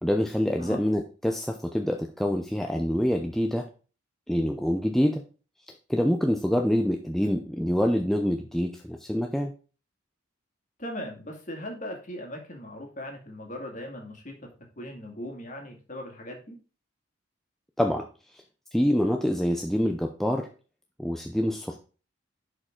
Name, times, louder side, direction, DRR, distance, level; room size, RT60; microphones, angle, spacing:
voice 1, 0.0-3.7 4.3-5.2 5.9-9.5 17.8-18.0 18.3-18.4 18.7-20.5 21.0-21.8, equal, ahead, 3 dB, 0.6 m, -26 dB
voice 2, 10.8-14.4 14.8-16.6, equal, 40° left, 2 dB, 2.2 m, -39 dB
11.0 x 5.0 x 3.7 m, 0.35 s
head